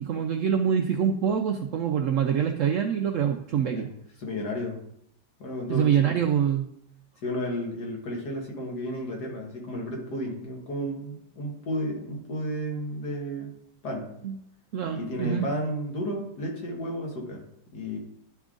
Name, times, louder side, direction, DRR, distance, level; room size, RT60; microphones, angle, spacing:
voice 1, 0.0-3.9 5.7-6.7 14.2-14.3 14.7-15.5, right 8 dB, 75° right, 4 dB, 0.7 m, -25 dB
voice 2, 4.2-4.8 5.4-6.2 7.2-13.5 13.8-14.1 14.9-17.5 17.7-18.0, equal, 70° left, 0 dB, 2.0 m, -32 dB
10.5 x 3.6 x 3.7 m, 0.75 s
omnidirectional pair, 1.8 m